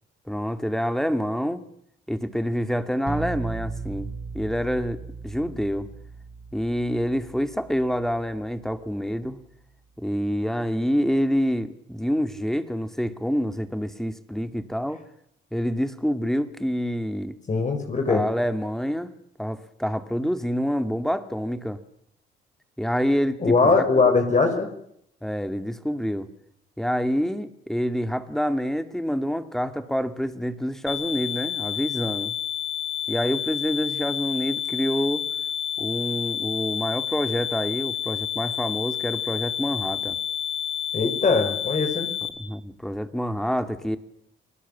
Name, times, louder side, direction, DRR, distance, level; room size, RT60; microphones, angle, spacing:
voice 1, 0.3-1.6 2.1-4.1 4.3-5.9 6.5-9.4 10.0-15.0 15.5-17.4 18.1-19.1 19.4-21.8 22.8-23.9 25.2-26.3 26.8-32.4 33.1-35.2 35.8-40.2 42.4-44.0, equal, ahead, 10 dB, 2.4 m, -27 dB
sound 1, 3.1-8.8, right 4 dB, 20° right, 5.7 m, -37 dB
voice 2, 17.5-18.2 23.4-24.7 40.9-42.1, left 4 dB, 40° left, 5 dB, 5.6 m, -21 dB
sound 2, 30.9-42.3, left 10 dB, 80° left, 6.6 m, -29 dB
29.0 x 20.0 x 7.4 m, 0.73 s
cardioid pair, 90°, 20 cm